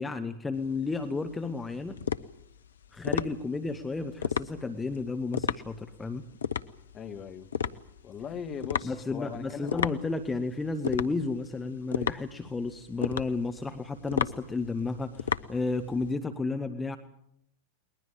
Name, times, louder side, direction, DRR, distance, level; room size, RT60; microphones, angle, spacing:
voice 1, 0.0-2.0 2.9-6.2 8.8-17.0, left 3 dB, 10° left, 1.3 m, -32 dB
sound 1, 0.6-16.1, left 7 dB, 65° left, 0.8 m, -34 dB
voice 2, 6.9-7.5 8.0-9.9, left 6 dB, 30° left, 1.8 m, -39 dB
21.0 x 20.5 x 8.7 m
figure-of-eight pair, 90°, 0 cm